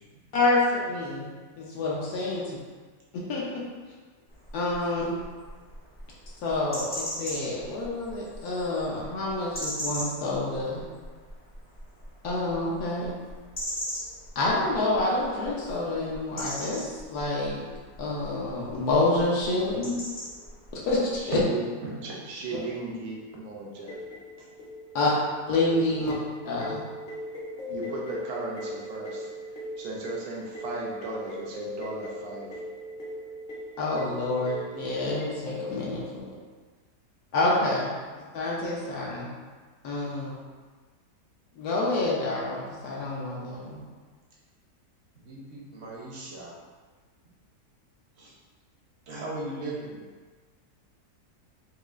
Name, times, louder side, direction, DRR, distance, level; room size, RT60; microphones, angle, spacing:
voice 1, 0.3-1.3 1.6-2.6 3.3-3.6 4.5-5.2 6.4-10.8 12.2-13.1 14.4-17.6 18.0-19.9 20.9-21.4 24.9-25.1 25.5-26.1 26.4-26.8 33.8-36.3 37.3-37.9 38.3-39.3 39.8-40.3 41.6-43.8, left 2 dB, 75° left, -5 dB, 1.1 m, -28 dB
sound 1, 4.3-21.4, equal, 20° left, 0.3 m, -40 dB
voice 2, 21.2-21.6 22.0-24.0 27.7-32.6, right 3 dB, 80° right, -3 dB, 1.1 m, -36 dB
voice 3, 21.8-22.2 45.2-46.6 48.2-48.3 49.1-50.0, right 2 dB, 55° right, -5 dB, 0.8 m, -37 dB
sound 2, 23.9-36.2, left 1 dB, 50° left, 0.7 m, -39 dB
4.7 x 2.3 x 2.4 m, 1.5 s
omnidirectional pair, 1.7 m